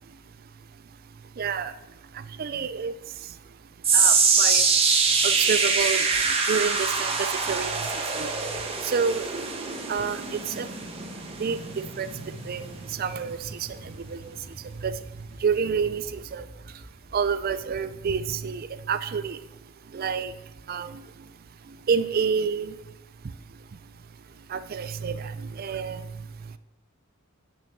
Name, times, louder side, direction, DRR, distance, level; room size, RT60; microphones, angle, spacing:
voice 1, 1.4-1.7 2.4-2.9 3.9-4.6 5.2-6.1 6.5-7.8 8.1-8.3 8.8-9.5 9.9-10.7 11.4-11.6 12.0-12.1 12.5-12.7 13.0-14.3 14.8-14.9 15.4-16.5 17.1-19.4 19.9-20.3 20.7-21.0 21.9-22.7 24.5-26.0, right 6 dB, 45° right, 13 dB, 0.4 m, -28 dB
sound 1, 3.8-16.2 16.5-16.8 17.5-17.6, right 4 dB, 25° right, 1.2 m, -25 dB
8.6 x 6.6 x 6.0 m, 1.1 s
head